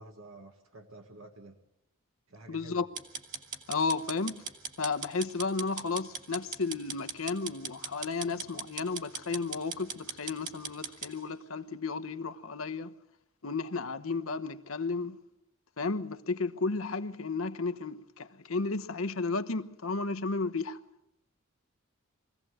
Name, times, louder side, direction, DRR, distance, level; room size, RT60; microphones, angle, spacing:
voice 1, 0.0-1.6 2.3-2.9, right 2 dB, 85° right, 1.6 m, -50 dB
voice 2, 2.5-2.9 3.7-4.4 4.8-12.9 13.4-15.2 15.8-20.8, left 4 dB, 90° left, 1.0 m, -33 dB
sound 1, 3.0-11.1, right 5 dB, 35° right, 2.4 m, -40 dB
23.0 x 16.5 x 7.9 m
head